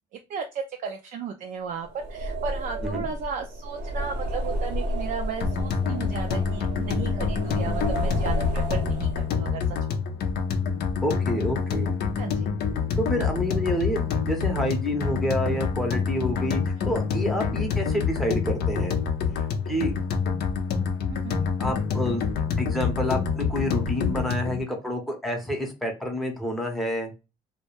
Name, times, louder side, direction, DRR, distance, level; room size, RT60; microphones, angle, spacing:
voice 1, 0.3-9.8 12.2-12.5 16.8-16.9 21.1-21.4, right 6 dB, 55° right, 3 dB, 0.4 m, -35 dB
sound 1, 1.9-9.4, equal, 80° right, 0.9 m, -31 dB
sound 2, 5.4-24.6, left 6 dB, 70° left, 0.5 m, -27 dB
voice 2, 11.0-12.0 13.0-14.0 14.3-19.0 19.7-19.9 21.6-22.2 22.6-27.1, equal, ahead, 1 dB, 0.7 m, -28 dB
2.2 x 2.0 x 3.0 m, 0.27 s
cardioid pair, 110°, 17 cm